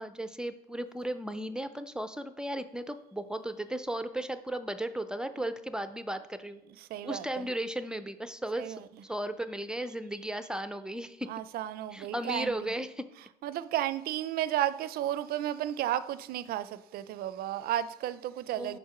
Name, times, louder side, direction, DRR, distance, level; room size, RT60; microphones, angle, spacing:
voice 1, 0.0-6.6 7.0-8.8 9.0-11.3 11.9-13.1 18.6-18.8, right 1 dB, 5° right, 0.4 m, -35 dB
voice 2, 6.8-7.5 8.6-8.9 11.3-12.5 13.4-18.8, right 12 dB, 65° right, 0.4 m, -33 dB
5.1 x 4.7 x 5.6 m
cardioid pair, 110°, 17 cm